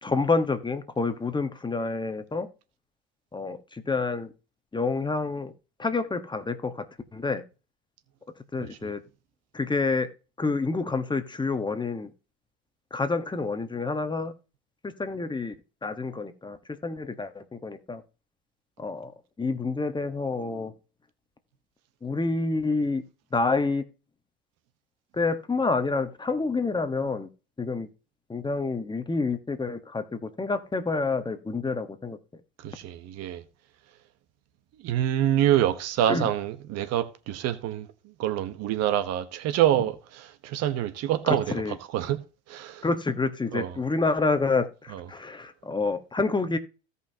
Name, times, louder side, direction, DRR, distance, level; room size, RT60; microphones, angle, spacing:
voice 1, 0.0-2.5 3.3-4.3 4.7-5.5 5.8-6.8 7.1-7.4 8.5-9.0 9.5-10.1 10.4-12.1 12.9-14.3 14.8-15.6 15.8-16.6 16.8-18.0 18.8-19.1 19.4-20.7 22.0-23.0 23.3-23.8 25.1-27.3 27.6-27.9 28.3-32.2 36.1-36.3 41.3-41.7 42.8-46.6, left 3 dB, 15° left, 1.2 m, -28 dB
voice 2, 8.6-8.9 32.6-33.4 34.8-37.9 38.2-42.2 42.5-42.8 43.5-43.8 44.9-45.0, right 11 dB, 55° right, 1.1 m, -26 dB
16.0 x 5.6 x 2.8 m
hypercardioid pair, 85°, 30 cm